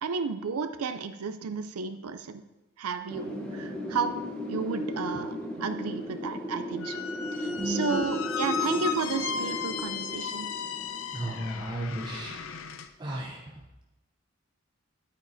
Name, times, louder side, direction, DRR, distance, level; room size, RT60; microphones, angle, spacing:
voice 1, 0.0-2.4 2.8-4.2 4.5-7.0 7.3-10.5, right 5 dB, 90° right, 9 dB, 0.5 m, -33 dB
Wind, 3.1-11.8, left 1 dB, 5° left, 0.9 m, -35 dB
Squeak, 6.8-12.9, left 7 dB, 65° left, 0.5 m, -35 dB
voice 2, 7.6-8.1 11.1-12.3 13.0-13.4, right 1 dB, 20° right, -2 dB, 0.7 m, -34 dB
9.5 x 9.0 x 2.7 m, 1.0 s
head